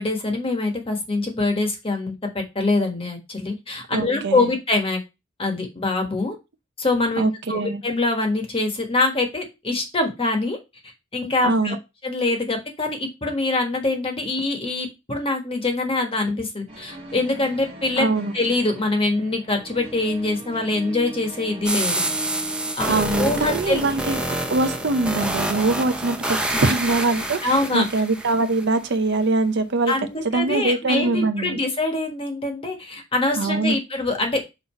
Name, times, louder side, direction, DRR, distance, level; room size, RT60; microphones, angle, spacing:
voice 1, 0.0-5.0 5.4-6.3 6.8-10.6 11.1-11.7 12.0-18.1 18.3-22.0 22.8-23.8 26.5-26.7 27.4-27.9 29.9-34.4, left 2 dB, 25° left, 1.4 m, -24 dB
voice 2, 3.9-4.5 7.2-7.8 11.4-11.8 18.0-18.3 22.9-24.2 24.5-29.9 30.2-31.6 33.4-33.8, right 3 dB, 60° right, 0.7 m, -23 dB
sound 1, 16.7-22.7, right 1 dB, 30° right, 1.4 m, -39 dB
sound 2, 21.6-28.6, right 1 dB, 5° right, 0.7 m, -27 dB
5.5 x 4.0 x 4.3 m
head